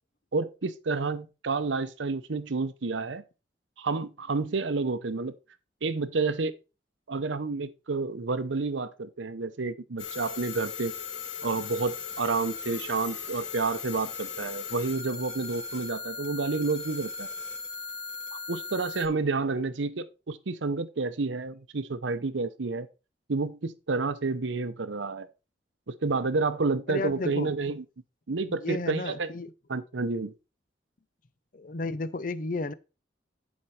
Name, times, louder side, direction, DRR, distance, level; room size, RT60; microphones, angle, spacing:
voice 1, 0.3-3.2 3.8-5.3 5.8-6.5 7.1-10.9 11.4-17.3 18.3-22.9 23.3-25.3 25.9-27.8 28.3-29.3 29.7-30.3, right 3 dB, 90° right, 0.7 m, -30 dB
sound 1, 10.0-19.1, left 5 dB, 75° left, 1.9 m, -38 dB
voice 2, 26.9-27.5 28.3-29.5 31.5-32.7, left 3 dB, 45° left, 0.6 m, -33 dB
11.0 x 5.2 x 4.3 m
head